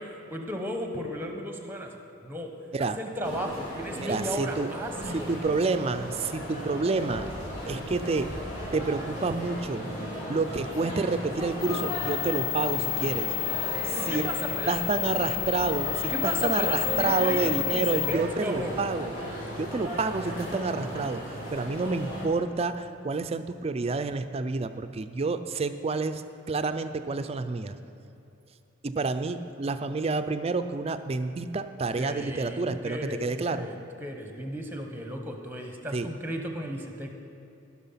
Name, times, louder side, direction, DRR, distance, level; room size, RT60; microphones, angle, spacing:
voice 1, 0.0-1.9 2.2-2.5 2.8-5.3 13.9-15.2 16.1-18.8 32.0-37.1, equal, 10° right, 4 dB, 0.9 m, -35 dB
sound 1, 3.2-22.3, equal, 35° left, 3.1 m, -36 dB
voice 2, 4.0-4.7 5.3-7.2 7.7-8.3 8.7-9.9 10.3-13.3 13.8-19.1 19.6-26.2 26.5-27.8 28.8-33.7 35.9-36.1, right 3 dB, 30° right, 10 dB, 0.4 m, -29 dB
sound 2, 11.6-18.1, left 17 dB, 75° left, 0.8 m, -30 dB
15.0 x 6.1 x 5.7 m, 2.7 s
head